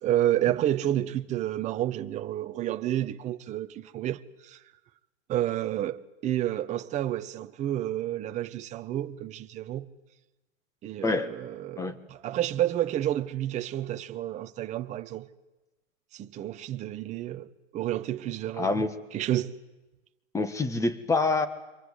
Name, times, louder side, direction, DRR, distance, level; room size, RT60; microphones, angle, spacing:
voice 1, 0.0-4.6 5.3-9.9 10.8-15.3 16.1-18.8 19.1-19.6, right 12 dB, 20° right, 1.0 m, -30 dB
voice 2, 18.6-18.9 20.3-21.5, left 3 dB, 10° left, 1.6 m, -26 dB
27.0 x 24.5 x 8.3 m
hypercardioid pair, 140°, 39 cm